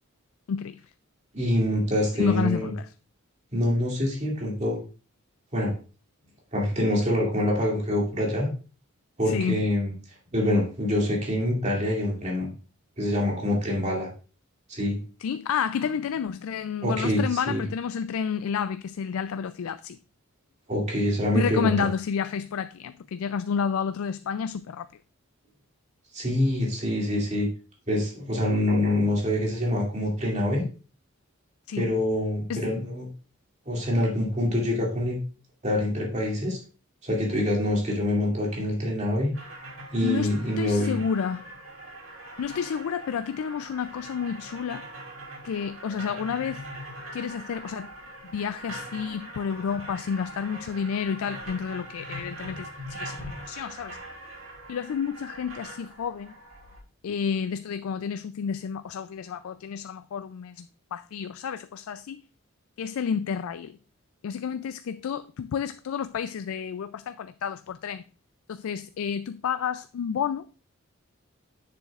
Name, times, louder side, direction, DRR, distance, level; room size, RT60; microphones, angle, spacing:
voice 1, 0.5-0.8 2.1-2.9 9.3-9.6 15.2-20.0 21.3-24.9 31.7-31.9 32.5-32.7 40.0-41.5 42.4-44.9 45.4-46.6 47.1-47.9 48.3-54.0 54.7-56.3 57.0-62.2 62.8-63.7 64.2-68.0 68.5-70.5, left 7 dB, 80° left, 0.3 m, -30 dB
voice 2, 1.3-2.7 3.5-4.8 5.5-5.7 6.5-8.5 9.2-9.9 10.3-12.5 13.0-14.1 14.7-15.0 16.8-17.6 20.7-21.9 26.1-27.5 27.9-30.6 31.7-33.1 33.7-35.2 35.6-36.6 37.0-39.3 39.9-41.0, left 1 dB, 35° right, 2.4 m, -25 dB
sound 1, 39.3-56.8, right 1 dB, 70° right, 3.1 m, -42 dB
10.5 x 6.8 x 2.4 m
head